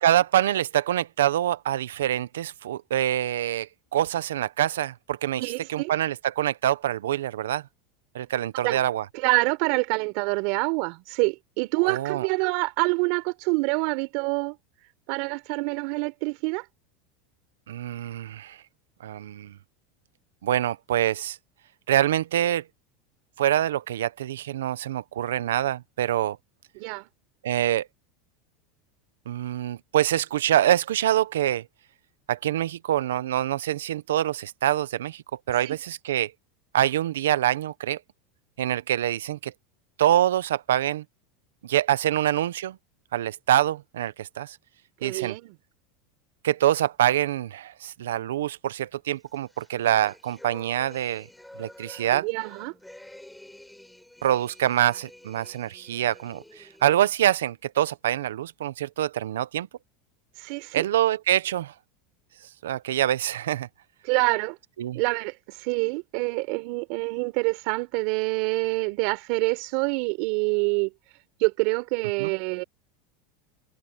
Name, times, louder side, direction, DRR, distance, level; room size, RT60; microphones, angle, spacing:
voice 1, 0.0-5.4 5.7-7.6 8.1-9.0 11.8-12.3 17.7-18.6 19.0-19.5 20.4-21.4 21.9-22.6 23.4-26.4 27.4-27.9 29.3-31.6 32.3-36.3 36.7-38.0 38.6-39.5 40.0-41.0 41.6-42.8 43.1-44.6 45.0-45.4 46.4-51.3 51.6-52.3 54.2-59.7 60.7-61.7 62.6-63.7 64.8-65.0 72.2-72.3, right 12 dB, 90° right, 0.9 m, -25 dB
voice 2, 5.4-5.9 8.6-8.8 9.1-14.6 15.1-16.6 26.7-27.1 35.6-35.8 45.0-45.5 52.1-52.7 60.4-60.9 64.0-64.6 64.9-70.9 71.4-72.6, right 29 dB, 65° right, 3.9 m, -26 dB
sound 1, 49.3-57.1, left 1 dB, 5° left, 6.6 m, -49 dB
supercardioid pair, 115°, 0 cm